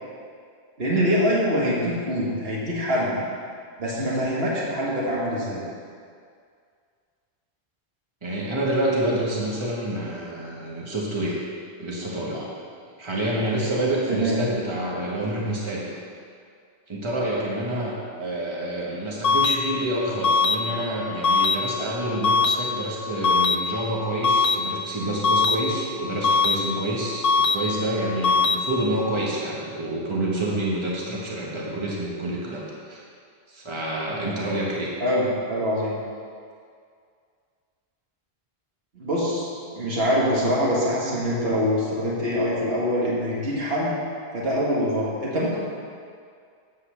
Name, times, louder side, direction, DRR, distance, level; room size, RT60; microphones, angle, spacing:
voice 1, 0.8-3.2 3.8-5.6 12.3-12.4 14.1-14.5 35.0-36.0 39.0-44.0 44.3-45.6, equal, 70° right, -6 dB, 1.9 m, -24 dB
voice 2, 8.2-11.4 11.8-12.4 13.0-15.9 16.9-33.0 33.5-34.9, right 1 dB, 30° right, -5 dB, 1.5 m, -28 dB
sound 1, 19.2-19.6 20.2-20.6 21.2-21.6 22.2-22.6 23.2-23.6 24.2-24.6 25.2-25.6 26.2-26.6 27.2-27.6 28.2-28.6, left 4 dB, 65° left, 0.8 m, -19 dB
8.1 x 5.6 x 6.8 m, 2.2 s
omnidirectional pair, 1.1 m